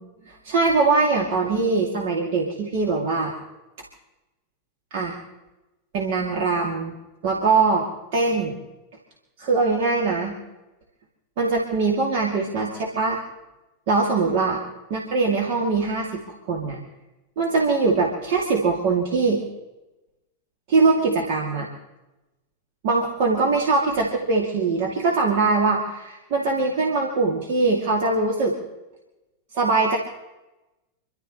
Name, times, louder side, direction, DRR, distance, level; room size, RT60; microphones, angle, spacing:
voice 1, 0.3-3.3 4.9-5.2 5.9-6.9 7.2-7.9 8.1-8.6 9.4-10.3 11.4-13.2 13.9-14.6 14.9-16.2 16.5-16.8 17.4-19.4 20.7-21.7 22.8-28.5 29.5-30.0, right 3 dB, 50° right, -2 dB, 2.6 m, -22 dB
29.0 x 12.5 x 3.1 m, 1.0 s
figure-of-eight pair, 90°, 0 cm